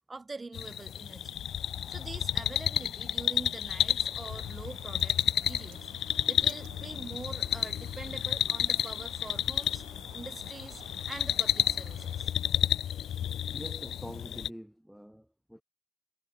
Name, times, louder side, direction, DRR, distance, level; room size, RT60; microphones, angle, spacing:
voice 1, 0.1-1.4 1.9-9.8 10.1-12.3, right 3 dB, 25° right, 6.6 m, -45 dB
sound 1, 0.5-14.5, left 10 dB, 65° left, 0.5 m, -31 dB
Bird, 4.0-12.2, right 20 dB, 85° right, 3.4 m, -54 dB
voice 2, 13.5-15.6, equal, 5° right, 1.4 m, -45 dB
supercardioid pair, 60°, 0 cm